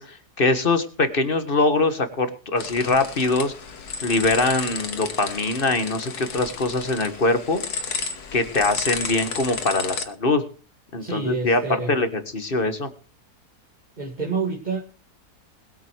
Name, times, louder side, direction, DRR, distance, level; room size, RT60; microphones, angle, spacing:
voice 1, 0.0-3.5 4.0-7.6 8.3-10.4 10.9-11.6 11.9-12.9, left 2 dB, 35° left, 9 dB, 1.7 m, -23 dB
sound 1, 2.6-10.0, left 5 dB, 80° left, 2.0 m, -32 dB
voice 2, 11.0-12.1 14.0-14.8, right 4 dB, 30° right, 0 dB, 2.3 m, -28 dB
21.0 x 7.9 x 4.7 m, 0.37 s
omnidirectional pair, 1.6 m